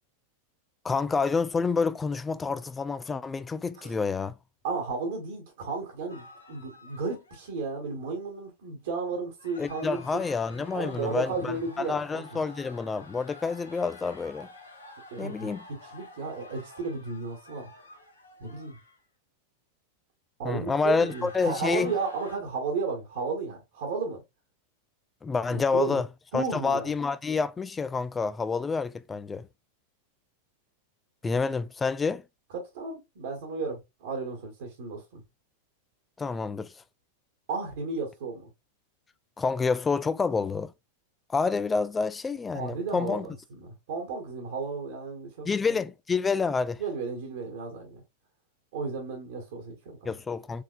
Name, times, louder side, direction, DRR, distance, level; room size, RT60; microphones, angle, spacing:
voice 1, 0.8-4.4 9.6-14.5 15.2-15.6 20.4-21.9 25.2-26.1 26.3-29.5 31.2-32.2 36.2-36.7 39.4-40.7 41.3-43.3 45.4-46.8 50.1-50.6, left 4 dB, 15° left, 0.3 m, -28 dB
voice 2, 4.6-10.2 10.7-12.4 15.1-17.7 18.4-18.8 20.4-24.2 25.5-26.0 26.3-26.9 32.5-35.2 37.5-38.5 42.5-45.8 46.8-48.0 48.7-50.1, right 4 dB, 55° right, 1.6 m, -34 dB
sound 1, 6.1-7.6 9.4-19.0 20.7-22.4, left 2 dB, 75° left, 1.2 m, -50 dB
4.7 x 3.5 x 2.4 m
figure-of-eight pair, 90°, 0 cm